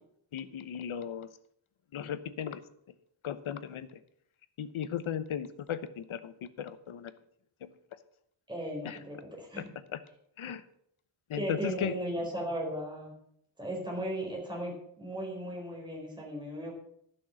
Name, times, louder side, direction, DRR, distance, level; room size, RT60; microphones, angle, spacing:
voice 1, 0.3-1.3 1.9-2.6 3.2-4.0 4.6-7.1 7.6-7.7 8.8-9.0 9.6-9.7 9.9-10.0 10.4-10.6 11.3-11.9, left 8 dB, 70° left, 13 dB, 1.0 m, -36 dB
voice 2, 8.5-9.7 11.4-13.1 13.6-16.7, right 1 dB, 10° right, -2 dB, 4.0 m, -36 dB
11.5 x 6.3 x 7.7 m, 0.70 s
wide cardioid pair, 140°, 50 cm